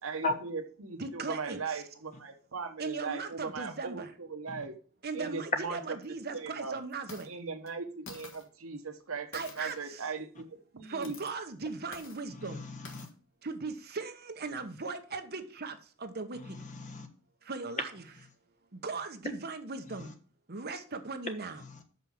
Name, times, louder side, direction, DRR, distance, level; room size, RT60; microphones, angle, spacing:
voice 1, 0.0-4.7 5.1-5.8 6.3-6.8 7.3-11.2, right 4 dB, 80° right, 1.2 m, -39 dB
voice 2, 1.0-1.8 2.8-4.1 5.0-7.3 9.3-10.0 10.9-12.6 13.4-16.6 17.5-17.9 18.7-20.1 20.5-21.6, right 4 dB, 50° right, 1.2 m, -38 dB
sound 1, 5.5-5.6 6.0-6.1 6.9-7.3 7.7-7.8 8.1-8.5 9.3-10.0 10.9-11.3 11.9-12.2 12.9-13.1, left 3 dB, 65° left, 1.8 m, -48 dB
voice 3, 12.3-13.1 16.3-17.1 19.9-20.1 21.6-21.8, left 2 dB, 35° left, 1.2 m, -38 dB
6.4 x 5.6 x 7.2 m
head